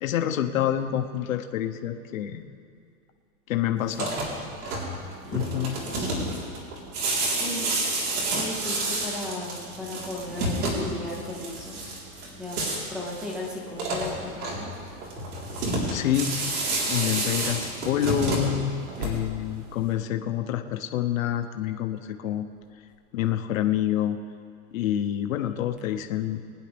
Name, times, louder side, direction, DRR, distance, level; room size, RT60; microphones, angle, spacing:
voice 1, 0.0-2.4 3.5-4.1 5.3-5.8 15.9-16.4 16.9-18.7 19.0-22.4 23.1-24.2 24.7-26.4, left 11 dB, 60° left, 6 dB, 1.1 m, -27 dB
sound 1, 3.8-19.5, right 2 dB, 80° right, 4.0 m, -30 dB
voice 2, 5.2-6.5 7.4-7.8 8.3-11.8 12.3-12.6 12.9-14.7, left 2 dB, ahead, -2 dB, 0.6 m, -36 dB
23.0 x 10.0 x 3.4 m, 2.4 s
supercardioid pair, 175°, 45 cm